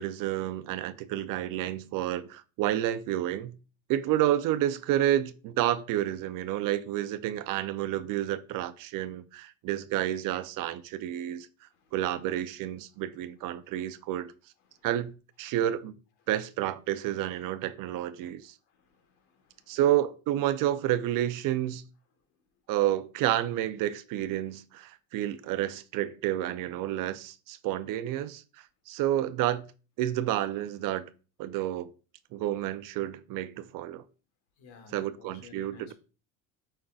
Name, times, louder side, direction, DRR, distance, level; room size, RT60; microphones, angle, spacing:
voice 1, 0.0-3.5 3.9-11.5 11.9-14.3 14.8-15.1 15.4-16.0 16.3-18.5 19.7-21.8 22.7-29.6 30.0-31.1 31.4-31.9 32.3-34.0 34.9-35.9, right 12 dB, 60° right, 0.5 m, -30 dB
voice 2, 18.7-19.8 34.6-35.9, left 5 dB, 80° left, 1.4 m, -54 dB
5.3 x 3.6 x 2.3 m
cardioid pair, 120°, 37 cm